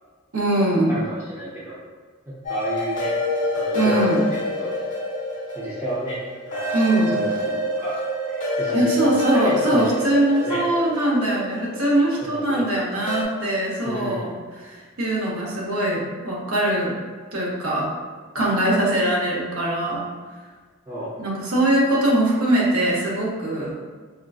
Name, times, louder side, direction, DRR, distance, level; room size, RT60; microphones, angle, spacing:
voice 1, 0.3-0.9 3.7-4.2 6.7-7.2 8.7-17.0 17.3-17.9 18.3-20.0 21.2-23.8, right 1 dB, 70° right, -4 dB, 0.8 m, -22 dB
voice 2, 0.9-1.8 2.3-3.2 3.5-4.7 5.5-6.2 6.5-7.3 7.8-8.0 8.3-10.6 12.2-12.6 12.9-13.0 13.8-14.3 20.9-21.1, right 1 dB, 10° right, -10 dB, 0.5 m, -32 dB
sound 1, 2.4-13.2, left 2 dB, 40° left, 1.0 m, -27 dB
3.5 x 2.5 x 2.3 m, 1.5 s
head